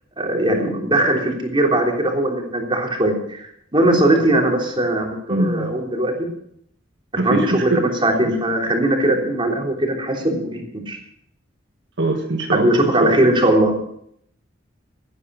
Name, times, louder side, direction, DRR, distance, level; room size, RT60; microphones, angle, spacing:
voice 1, 0.2-6.1 7.1-11.0 12.5-13.7, right 1 dB, 25° right, 0 dB, 3.4 m, -19 dB
voice 2, 5.3-5.7 7.2-7.9 12.0-13.2, right 2 dB, 65° right, 3 dB, 1.6 m, -22 dB
16.5 x 9.9 x 6.3 m, 0.69 s
head